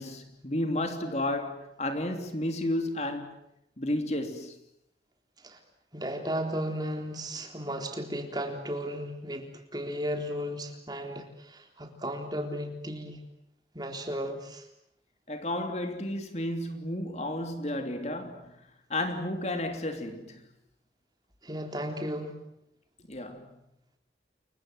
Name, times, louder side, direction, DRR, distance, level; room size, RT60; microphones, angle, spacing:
voice 1, 0.0-3.4 3.8-4.6 15.3-18.5 18.9-20.4 23.1-23.5, left 1 dB, 40° left, 3.1 m, -32 dB
voice 2, 5.9-13.2 13.7-14.7 21.4-22.4, equal, 25° right, 3.7 m, -35 dB
29.5 x 23.5 x 7.9 m
head